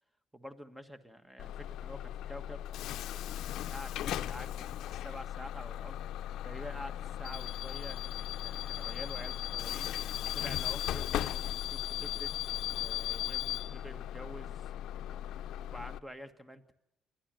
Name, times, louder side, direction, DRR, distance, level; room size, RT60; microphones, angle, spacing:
voice 1, 0.3-2.6 3.2-8.0 8.4-11.3 11.7-12.3 12.6-14.7 15.0-16.7, equal, 5° right, 10 dB, 1.6 m, -48 dB
Bus / Alarm, 1.4-16.0, left 12 dB, 70° left, 0.7 m, -37 dB
30.0 x 12.0 x 7.7 m, 0.89 s
cardioid pair, 115°, 0 cm